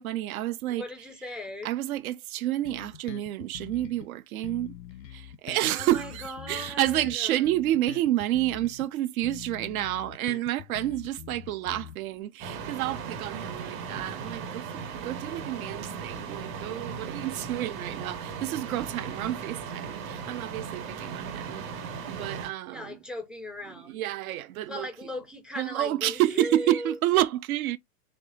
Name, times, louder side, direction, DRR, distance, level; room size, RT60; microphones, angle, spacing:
voice 1, 0.0-0.8 1.6-4.7 5.1-23.0 23.8-24.9 25.6-27.8, right 14 dB, 60° right, 0.6 m, -29 dB
voice 2, 0.8-1.7 5.7-7.4 22.7-24.0 24.7-27.0, left 1 dB, ahead, 0.4 m, -38 dB
Bass guitar, 2.6-4.1 4.4-8.9 9.2-12.2, left 10 dB, 90° left, 0.6 m, -44 dB
sound 1, 12.4-22.5, right 6 dB, 45° right, 1.6 m, -37 dB
3.3 x 3.2 x 2.6 m
hypercardioid pair, 100°, 49 cm